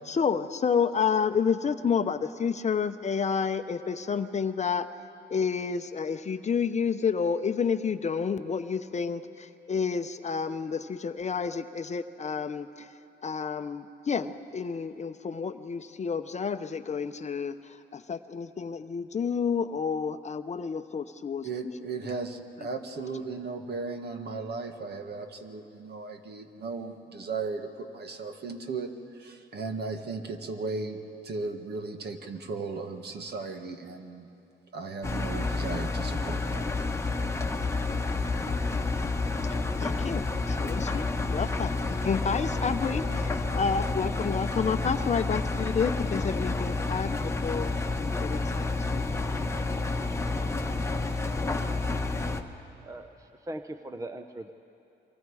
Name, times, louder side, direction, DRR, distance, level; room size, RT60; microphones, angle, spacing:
voice 1, 0.1-4.9 5.3-12.9 13.2-21.7 22.0-22.1 39.8-47.7 48.2-49.1, left 6 dB, 35° left, 10 dB, 0.7 m, -30 dB
voice 2, 21.4-34.3 34.7-36.7, right 4 dB, 55° right, 6 dB, 1.8 m, -36 dB
Engine, 35.0-52.4, left 3 dB, 15° left, 1.2 m, -29 dB
voice 3, 52.8-54.5, right 1 dB, 15° right, 9 dB, 0.7 m, -40 dB
29.0 x 24.0 x 4.8 m, 2.8 s
cardioid pair, 90°, 20 cm